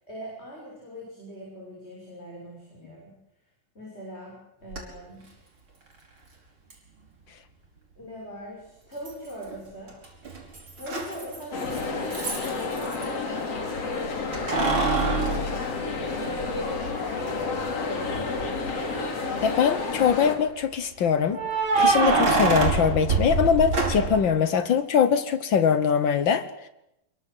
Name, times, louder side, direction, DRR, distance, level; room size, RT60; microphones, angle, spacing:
voice 1, 0.0-3.1 3.8-5.3 8.0-10.0 10.7-15.7 16.1-18.7, equal, 15° left, 6.9 m, -41 dB
Keys jangling, 4.7-4.8 6.7-6.8 9.1-9.6 9.9-13.1 14.3-16.5 16.9-17.0 18.8-19.4 21.3-24.3, right 3 dB, 35° right, 5.6 m, -25 dB
sound 1, 11.5-20.4, left 4 dB, 45° left, 4.0 m, -30 dB
voice 2, 19.4-21.4 21.8-26.5, left 7 dB, 85° left, 1.0 m, -22 dB
27.0 x 22.5 x 8.0 m
omnidirectional pair, 4.0 m